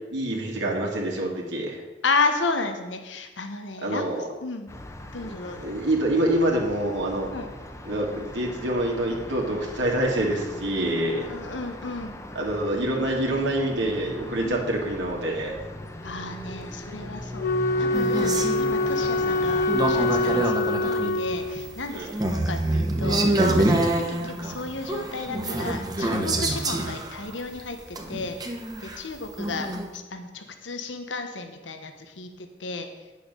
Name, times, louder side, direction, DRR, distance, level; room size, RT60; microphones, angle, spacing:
voice 1, 0.0-1.8 3.8-4.3 5.6-7.3 7.9-11.2 12.4-15.5 21.9-22.1, right 1 dB, 70° right, -1 dB, 2.1 m, -26 dB
voice 2, 2.0-4.7 5.1-5.8 7.3-7.5 11.1-12.2 14.4-14.6 16.0-17.5 17.8-28.5 28.8-32.9, left 3 dB, 90° left, 6 dB, 1.1 m, -33 dB
sound 1, 4.7-20.4, left 1 dB, 15° left, 0.9 m, -39 dB
Wind instrument woodwind instrument, 17.4-21.8, left 2 dB, 50° left, 0.4 m, -25 dB
sound 2, 17.9-29.9, right 1 dB, 20° right, 1.2 m, -26 dB
9.3 x 6.8 x 6.8 m, 1.2 s
head